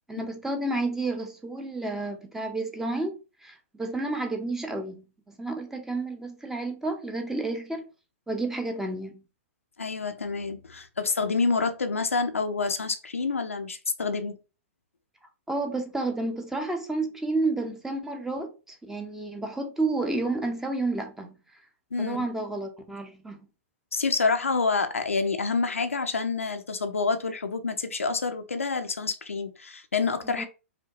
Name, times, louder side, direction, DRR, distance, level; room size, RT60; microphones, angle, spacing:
voice 1, 0.1-7.9 8.3-9.2 15.5-21.4 22.0-23.4 30.3-30.5, right 2 dB, 5° right, 0.6 m, -31 dB
voice 2, 9.8-14.4 21.9-22.3 23.9-30.5, left 4 dB, 80° left, 0.6 m, -28 dB
5.0 x 2.2 x 2.9 m
figure-of-eight pair, 110°, 7 cm